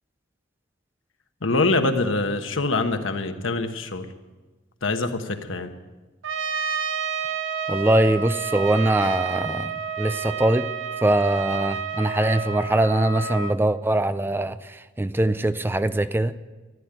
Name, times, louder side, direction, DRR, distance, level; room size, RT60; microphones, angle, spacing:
voice 1, 1.4-4.1 4.8-5.7, left 2 dB, 90° left, 7 dB, 1.3 m, -24 dB
Trumpet, 6.2-13.6, right 6 dB, 80° right, 0.8 m, -30 dB
voice 2, 7.7-10.7 11.0-16.3, right 1 dB, 10° right, 13 dB, 0.4 m, -22 dB
14.0 x 10.0 x 9.1 m, 1.2 s
head